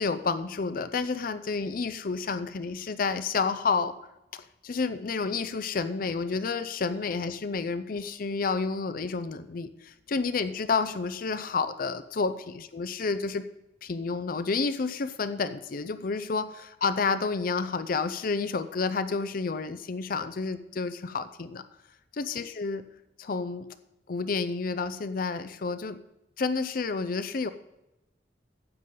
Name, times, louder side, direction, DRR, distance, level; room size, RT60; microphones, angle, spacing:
voice 1, 0.0-3.9 4.3-13.4 13.8-21.6 22.2-22.8 23.2-23.7 24.1-26.0 26.4-27.5, left 4 dB, 50° left, 12 dB, 0.5 m, -30 dB
15.0 x 9.1 x 3.8 m, 0.91 s
head